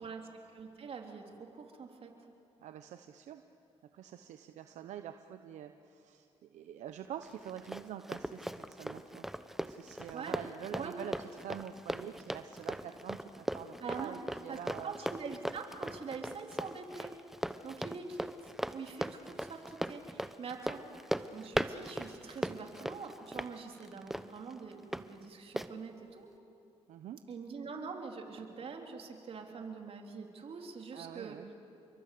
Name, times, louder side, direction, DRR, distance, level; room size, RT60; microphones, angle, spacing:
voice 1, 0.0-2.1 10.1-10.4 10.7-11.0 13.8-14.2 14.5-17.1 17.6-20.8 21.1-26.3 27.3-31.4, right 5 dB, 55° right, 2 dB, 3.7 m, -44 dB
voice 2, 2.6-3.4 3.9-9.3 9.6-14.9 26.9-27.2 30.9-31.5, right 10 dB, 80° right, 8 dB, 1.0 m, -46 dB
Run, 7.2-25.0 25.6-25.7, equal, 5° right, 1.0 m, -39 dB
29.5 x 23.0 x 8.5 m, 2.7 s
cardioid pair, 80°, 12 cm